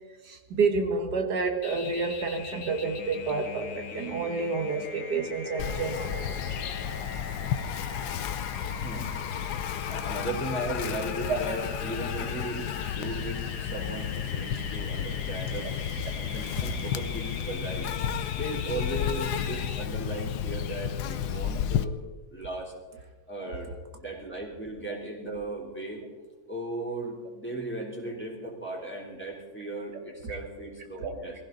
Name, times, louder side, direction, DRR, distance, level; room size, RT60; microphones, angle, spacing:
voice 1, 0.2-6.5 11.3-11.4 23.4-23.6 30.2-30.4 31.0-31.1, right 4 dB, 85° right, 6 dB, 2.1 m, -29 dB
sound 1, 1.6-19.8, left 5 dB, 55° left, 1.6 m, -41 dB
Insect, 5.6-21.8, left 9 dB, 85° left, 1.3 m, -32 dB
voice 2, 8.8-9.4 9.9-15.7 16.2-17.9 18.3-22.0 22.3-23.7 24.0-26.0 26.5-31.4, right 1 dB, 5° left, -2 dB, 3.4 m, -37 dB
22.5 x 15.5 x 3.9 m, 1.4 s
omnidirectional pair, 1.7 m